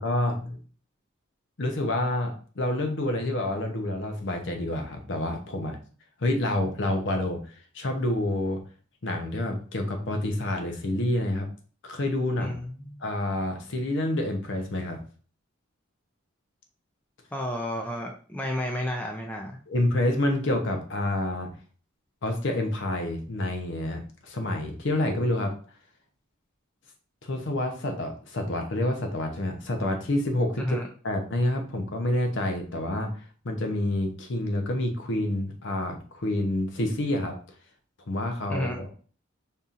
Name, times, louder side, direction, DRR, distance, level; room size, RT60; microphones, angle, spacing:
voice 1, 0.0-0.6 1.6-5.8 6.2-8.6 9.0-11.5 11.8-12.6 13.0-15.0 19.7-21.5 22.2-25.5 27.2-30.8 31.0-33.1 33.4-37.4 38.1-38.9, left 1 dB, 60° left, 4 dB, 0.7 m, -28 dB
voice 2, 12.4-13.0 17.3-19.6 30.6-30.9 38.5-38.8, left 1 dB, 10° left, 1 dB, 0.4 m, -31 dB
5.3 x 2.8 x 2.5 m, 0.41 s
head